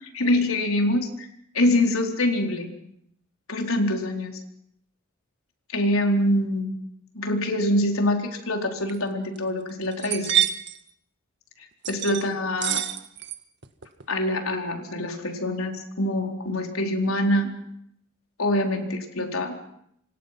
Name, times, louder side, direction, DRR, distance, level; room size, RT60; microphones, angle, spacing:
voice 1, 0.1-1.3 1.5-2.7 3.5-4.3 5.7-6.7 7.1-10.3 11.9-12.8 14.1-17.5 18.4-19.7, left 1 dB, 85° left, 3 dB, 4.3 m, -24 dB
sound 1, 8.8-9.0 9.4-9.5 9.8-10.8 11.8-12.2 12.6-13.4 13.6-14.0, right 11 dB, 55° right, 1.7 m, -26 dB
28.5 x 25.5 x 5.9 m, 0.72 s
head